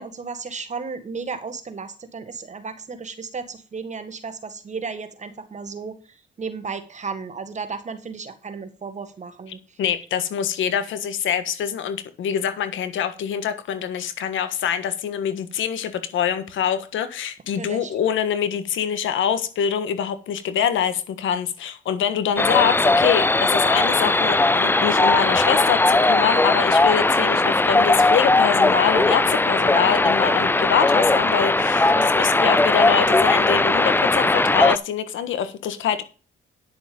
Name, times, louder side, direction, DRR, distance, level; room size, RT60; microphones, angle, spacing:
voice 1, 0.0-9.8 17.6-17.9 32.0-32.1, right 5 dB, 35° right, 1.8 m, -34 dB
voice 2, 9.8-36.0, left 8 dB, 80° left, 1.5 m, -24 dB
sound 1, 22.4-34.8, left 2 dB, 10° left, 0.5 m, -18 dB
10.5 x 6.9 x 5.3 m
cardioid pair, 90°, 20 cm